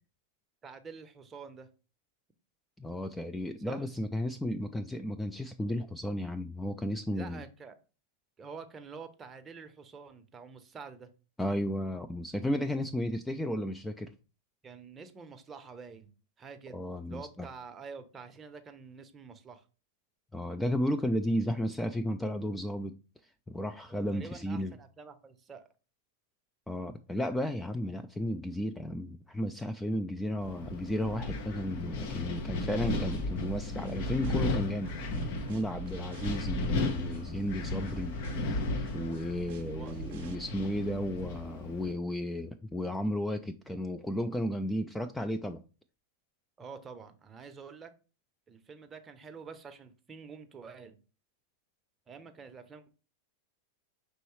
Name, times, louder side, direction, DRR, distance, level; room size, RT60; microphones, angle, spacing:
voice 1, 0.6-1.7 3.7-3.8 7.1-7.8 8.4-11.1 14.6-16.1 16.4-16.8 17.1-19.6 23.9-25.7 39.8-39.9 46.6-47.9 48.5-51.0 52.1-52.9, right 5 dB, 20° right, 0.7 m, -47 dB
voice 2, 2.8-7.4 11.4-14.1 16.7-17.5 20.3-22.9 23.5-24.7 26.7-38.1 38.5-38.6 38.9-45.6, left 1 dB, 5° left, 0.3 m, -33 dB
Wind, 30.4-41.9, left 2 dB, 60° left, 0.8 m, -35 dB
sound 1, 32.4-40.4, right 10 dB, 60° right, 0.5 m, -47 dB
5.5 x 3.0 x 3.1 m
hypercardioid pair, 110°, 0 cm